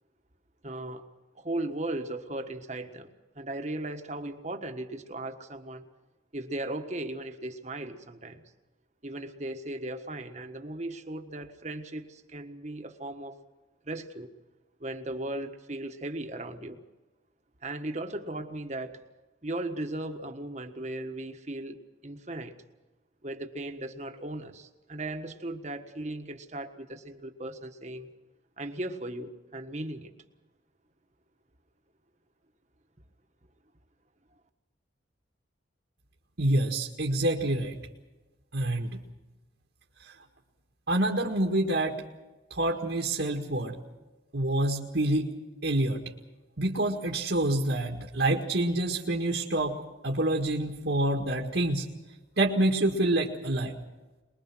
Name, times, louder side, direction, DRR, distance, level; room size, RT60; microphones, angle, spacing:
voice 1, 0.6-1.0 1.3-3.1 3.3-5.8 6.3-8.4 9.0-13.4 13.8-14.3 14.8-16.8 17.6-19.0 19.4-21.8 22.0-22.5 23.2-28.1 28.6-30.1, right 1 dB, 35° right, 7 dB, 1.5 m, -37 dB
voice 2, 36.4-37.8 38.5-39.0 40.0-40.1 40.9-42.0 42.5-43.8 44.3-45.3 45.6-46.0 46.6-49.8 50.0-51.8 52.4-53.8, right 1 dB, 65° right, 0 dB, 1.9 m, -27 dB
23.5 x 22.0 x 6.2 m, 1.2 s
head